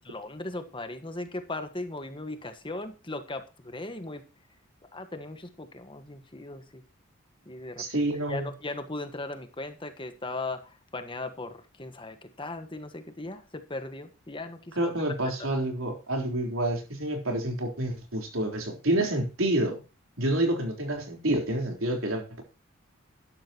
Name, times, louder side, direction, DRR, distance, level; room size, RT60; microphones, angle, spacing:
voice 1, 0.0-4.2 4.9-6.8 7.5-14.9 15.4-15.5, left 2 dB, 25° left, 8 dB, 1.4 m, -38 dB
voice 2, 7.8-8.5 14.8-19.8 20.2-22.4, right 1 dB, 90° right, 2 dB, 3.9 m, -28 dB
12.5 x 12.0 x 3.0 m, 0.33 s
head